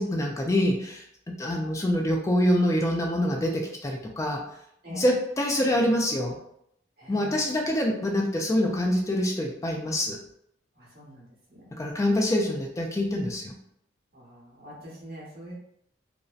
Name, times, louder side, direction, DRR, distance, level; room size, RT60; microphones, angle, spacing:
voice 1, 0.0-4.4 4.9-6.4 7.1-10.2 11.7-13.5, left 1 dB, 15° left, 1 dB, 0.3 m, -25 dB
voice 2, 7.0-7.7 10.7-11.8 14.1-15.5, equal, 50° right, -5 dB, 0.9 m, -45 dB
2.5 x 2.1 x 2.4 m, 0.72 s
head